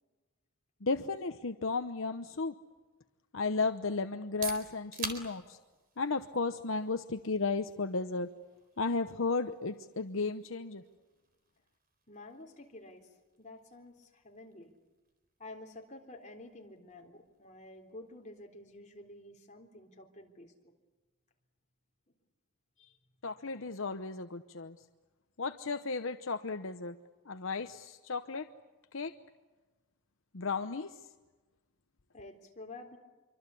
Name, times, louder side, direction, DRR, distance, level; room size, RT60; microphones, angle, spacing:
voice 1, 0.8-2.5 3.3-5.6 6.0-8.3 8.8-10.8 23.2-24.8 25.4-27.0 27.3-28.5 28.9-29.1 30.3-30.9, left 4 dB, 70° left, 9 dB, 0.9 m, -34 dB
sound 1, 4.1-19.8, right 5 dB, 45° right, 4.1 m, -50 dB
voice 2, 12.1-14.7 15.4-20.5 22.8-23.0 32.1-33.0, left 2 dB, 35° left, 1 dB, 3.7 m, -50 dB
26.0 x 25.0 x 8.5 m, 1.2 s
head